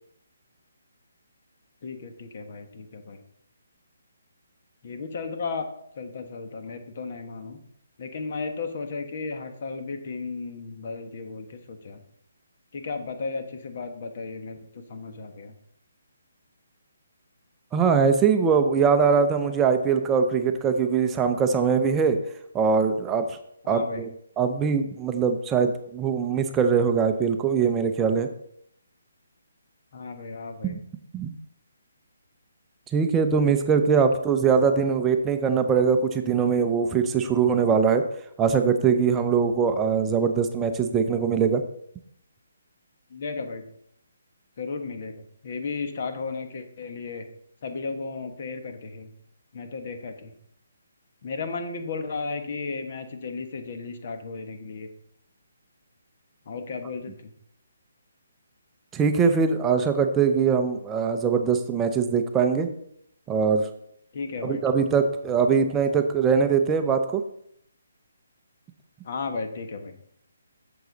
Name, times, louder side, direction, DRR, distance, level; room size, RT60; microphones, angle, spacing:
voice 1, 1.8-3.2 4.8-5.6 6.0-7.6 8.0-12.0 12.7-15.5 23.6-24.0 29.9-30.7 43.1-43.6 44.6-47.2 47.6-49.1 49.5-50.3 51.2-54.9 56.5-57.3 64.1-64.6 69.0-69.9, left 4 dB, 50° left, 6 dB, 1.4 m, -34 dB
voice 2, 17.7-22.2 22.5-23.4 23.7-28.3 30.6-30.8 31.1-31.3 32.9-38.1 38.4-41.6 58.9-62.7 63.3-63.7 64.4-67.2, right 6 dB, 15° right, 6 dB, 0.6 m, -22 dB
7.9 x 7.0 x 4.0 m, 0.69 s
hypercardioid pair, 155°, 0 cm